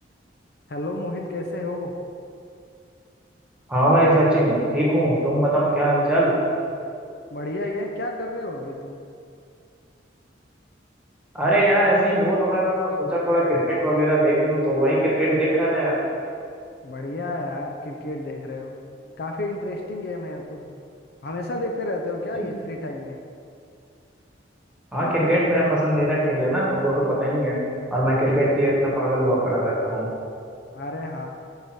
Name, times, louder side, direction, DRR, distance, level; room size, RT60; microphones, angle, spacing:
voice 1, 0.7-1.9 7.3-9.0 16.8-18.8 19.2-20.7 21.2-23.2 30.7-31.3, left 2 dB, 60° left, 2 dB, 0.6 m, -31 dB
voice 2, 3.7-6.3 11.3-15.9 24.9-27.6 27.9-30.1, right 1 dB, 5° right, -6 dB, 1.8 m, -21 dB
6.9 x 4.9 x 6.3 m, 2.4 s
head